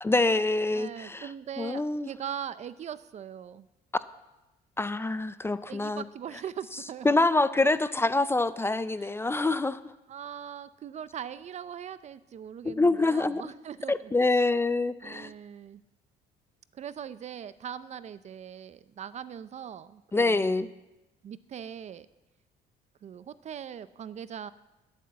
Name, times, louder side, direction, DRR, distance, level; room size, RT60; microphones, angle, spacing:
voice 1, 0.0-1.3 1.6-2.1 4.8-6.0 7.0-9.9 12.6-13.4 13.9-15.3 20.1-20.7, left 2 dB, 15° left, 14 dB, 0.4 m, -26 dB
voice 2, 0.7-3.7 5.7-7.2 9.0-9.2 10.1-14.1 15.0-15.8 16.7-20.6 21.2-22.1 23.0-24.5, right 9 dB, 40° right, 15 dB, 0.5 m, -41 dB
11.5 x 8.1 x 7.6 m, 1.0 s
cardioid pair, 110°, 17 cm